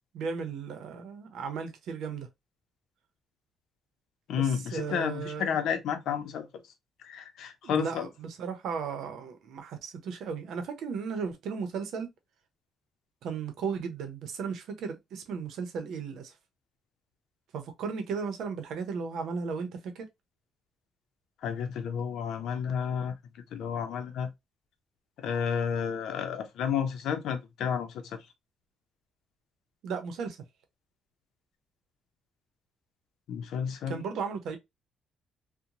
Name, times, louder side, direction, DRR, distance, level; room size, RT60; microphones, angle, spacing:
voice 1, 0.1-2.3 4.3-5.6 7.6-12.1 13.2-16.3 17.5-20.0 29.8-30.4 33.9-34.6, right 5 dB, 80° right, 0.7 m, -35 dB
voice 2, 4.3-6.5 7.0-8.1 21.4-23.1 23.5-24.3 25.2-28.2 33.3-34.0, left 7 dB, 80° left, 0.6 m, -31 dB
2.9 x 2.1 x 2.5 m
cardioid pair, 90°, 0 cm